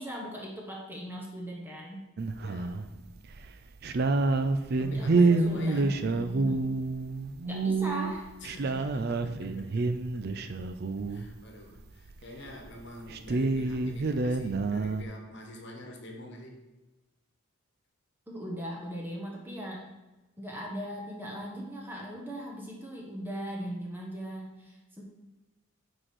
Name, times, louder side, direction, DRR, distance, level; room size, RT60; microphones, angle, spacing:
voice 1, 0.0-2.0 4.8-6.7 7.4-8.3 18.3-19.9 20.4-25.0, equal, 10° right, -1 dB, 1.1 m, -39 dB
sound 1, 2.2-2.8 3.2-3.5 3.8-11.3 12.1-12.2 12.5-12.6 12.8-15.0, right 3 dB, 45° right, 0.4 m, -28 dB
voice 2, 2.4-2.9 4.8-6.1 8.4-10.2 11.1-16.6, left 1 dB, 55° left, 2 dB, 1.3 m, -46 dB
6.3 x 4.8 x 6.1 m, 1.1 s
head